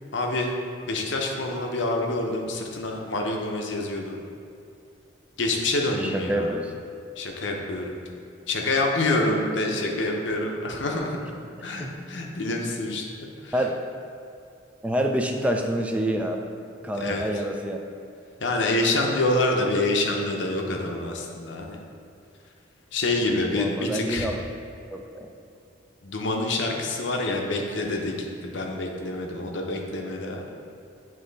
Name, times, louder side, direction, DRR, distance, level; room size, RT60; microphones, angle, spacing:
voice 1, 0.1-0.5 0.9-4.2 5.4-6.5 7.2-8.0 8.5-11.2 11.6-13.5 17.0-17.2 18.4-21.8 22.9-24.3 26.0-30.6, left 2 dB, 70° left, 1 dB, 0.7 m, -27 dB
voice 2, 6.0-6.7 11.5-11.9 13.5-13.7 14.8-16.4 16.8-17.8 23.6-24.4 24.9-25.3, right 1 dB, 5° right, 2 dB, 0.3 m, -27 dB
7.8 x 3.1 x 3.9 m, 2.6 s
head